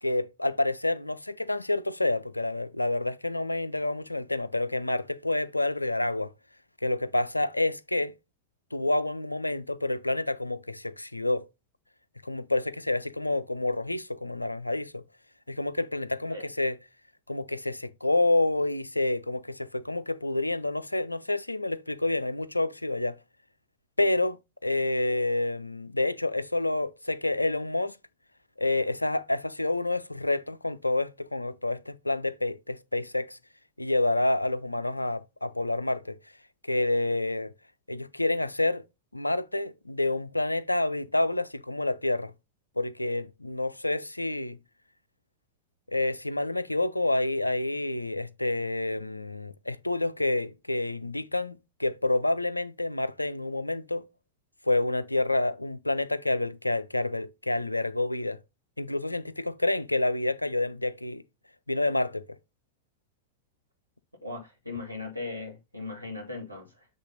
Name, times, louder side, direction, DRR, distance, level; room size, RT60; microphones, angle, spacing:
voice 1, 0.0-6.3 6.8-8.1 8.7-11.5 12.2-15.0 15.5-16.8 17.3-23.1 24.0-24.4 24.6-27.9 28.6-33.4 33.8-36.2 36.7-37.5 37.9-38.8 39.1-42.3 42.8-44.6 45.9-54.1 54.7-58.4 58.8-61.2 61.7-62.2, left 2 dB, 85° left, 0.5 m, -28 dB
voice 2, 64.2-66.9, left 3 dB, 90° right, 2.2 m, -38 dB
8.1 x 3.4 x 3.9 m
figure-of-eight pair, 90°, 0 cm